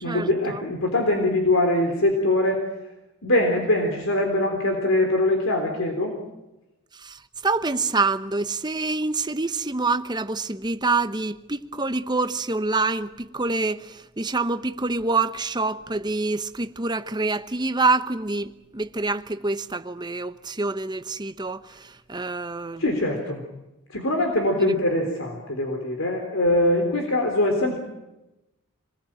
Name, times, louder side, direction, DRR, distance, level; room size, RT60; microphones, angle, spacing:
voice 1, 0.0-2.6 3.2-6.1 22.8-23.4 23.9-27.8, left 1 dB, 65° left, 3.9 m, -22 dB
voice 2, 7.0-22.8, right 3 dB, 20° right, 0.9 m, -26 dB
26.5 x 20.5 x 9.0 m
head